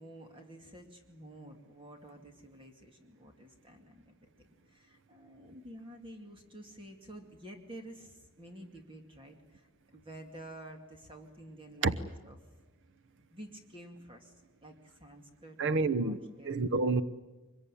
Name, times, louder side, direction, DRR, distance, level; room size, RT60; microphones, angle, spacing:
voice 1, 0.0-4.3 4.7-12.4 13.3-15.6 15.9-16.6, right 1 dB, 25° right, 2.4 m, -50 dB
voice 2, 15.6-16.2 16.4-17.0, right 3 dB, 60° right, 0.9 m, -28 dB
24.0 x 22.5 x 9.9 m
head